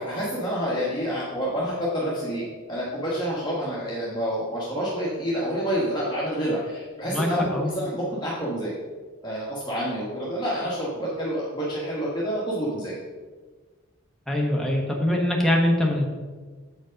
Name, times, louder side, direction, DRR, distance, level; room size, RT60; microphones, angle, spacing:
voice 1, 0.0-8.7 9.2-12.9, equal, 20° left, -7 dB, 1.4 m, -28 dB
voice 2, 7.1-7.7 14.3-16.0, left 1 dB, ahead, -1 dB, 1.2 m, -23 dB
7.8 x 5.2 x 5.1 m, 1.4 s
head